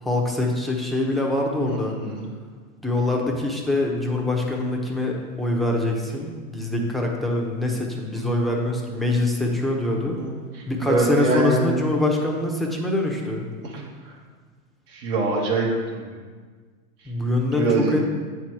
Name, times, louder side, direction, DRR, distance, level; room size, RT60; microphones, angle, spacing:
voice 1, 0.0-1.9 2.8-10.2 10.7-13.4 17.1-18.1, left 2 dB, ahead, -1 dB, 0.8 m, -24 dB
voice 2, 1.6-2.3 8.1-8.3 8.5-8.7 10.1-11.7 13.6-14.1 14.9-16.2 17.5-18.0, right 3 dB, 75° right, -2 dB, 2.1 m, -25 dB
8.2 x 4.6 x 4.8 m, 1.5 s
hypercardioid pair, 120°, 45 cm